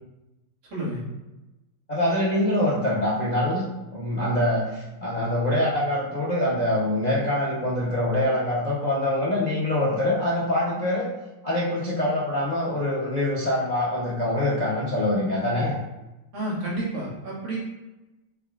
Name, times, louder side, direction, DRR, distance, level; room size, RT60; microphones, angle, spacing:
voice 1, 0.7-1.0 16.3-17.6, right 1 dB, 85° right, -7 dB, 3.0 m, -30 dB
voice 2, 1.9-3.6 3.9-11.1 11.4-15.8, left 1 dB, 35° left, -6 dB, 0.6 m, -24 dB
6.9 x 5.5 x 2.5 m, 1.0 s
omnidirectional pair, 2.3 m